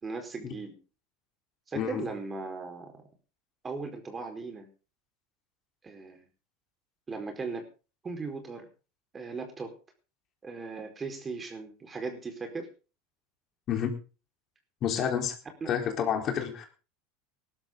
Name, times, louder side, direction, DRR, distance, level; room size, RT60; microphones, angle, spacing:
voice 1, 0.0-0.8 1.7-2.9 3.6-4.7 5.8-6.3 7.1-7.7 8.0-8.7 9.1-9.7 10.4-12.7 15.6-16.1, right 4 dB, 25° right, 5 dB, 4.6 m, -38 dB
voice 2, 14.8-15.4 15.7-16.6, left 8 dB, 45° left, 4 dB, 4.0 m, -29 dB
19.0 x 12.5 x 3.9 m, 0.35 s
hypercardioid pair, 85°, 0 cm